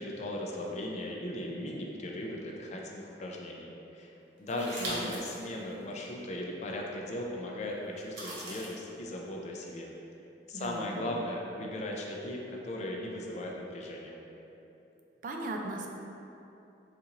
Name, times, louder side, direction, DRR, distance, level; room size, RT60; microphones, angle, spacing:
voice 1, 0.0-4.1 4.4-9.9 10.5-14.2, left 1 dB, 40° left, -1 dB, 0.4 m, -37 dB
voice 2, 4.5-5.1 10.5-11.0 15.2-15.9, right 2 dB, 50° right, 2 dB, 0.3 m, -37 dB
sound 1, 4.5-5.4 5.9-6.0 8.0-8.7, right 1 dB, 80° right, 0.9 m, -39 dB
4.1 x 2.5 x 2.8 m, 2.9 s
head